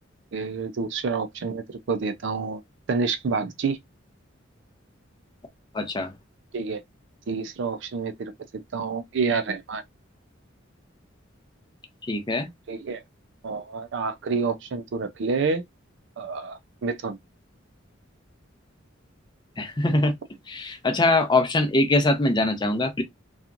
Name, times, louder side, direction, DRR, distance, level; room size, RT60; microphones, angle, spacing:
voice 1, 0.3-2.6 2.9-3.8 6.5-6.8 7.3-9.8 12.7-13.0 13.4-15.6 16.2-17.2, right 4 dB, 65° right, 0.4 m, -28 dB
voice 2, 5.7-6.1 12.1-12.5 19.6-20.1 20.5-23.0, left 2 dB, 25° left, 0.5 m, -22 dB
2.8 x 2.4 x 2.4 m
head